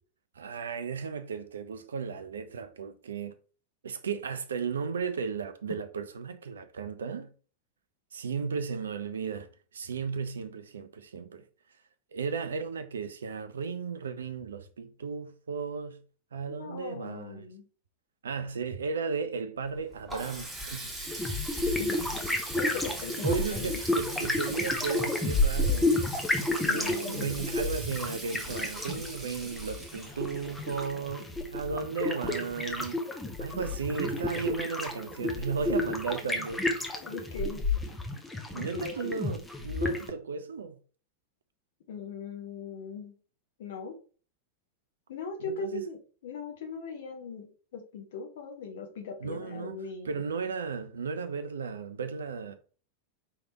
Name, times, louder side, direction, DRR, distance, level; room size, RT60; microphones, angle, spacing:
voice 1, 0.4-3.4 3.8-7.3 8.1-9.5 9.7-11.4 12.1-16.0 16.3-17.4 18.2-21.0 23.2-26.0 26.7-33.0 33.4-36.7 38.5-40.8 45.5-45.8 49.2-49.8 50.0-52.5, right 5 dB, 70° right, 0.5 m, -35 dB
voice 2, 16.5-17.6 21.8-22.0 22.6-23.7 26.6-27.4 37.0-37.6 38.5-39.2 41.9-43.1 43.6-44.0 45.1-50.2, left 5 dB, 55° left, 1.1 m, -39 dB
Water tap faucet, 19.6-31.3, right 1 dB, 10° right, 1.6 m, -41 dB
sound 1, 21.1-40.1, left 2 dB, 10° left, 0.8 m, -31 dB
4.7 x 3.3 x 2.9 m
figure-of-eight pair, 90°, 0 cm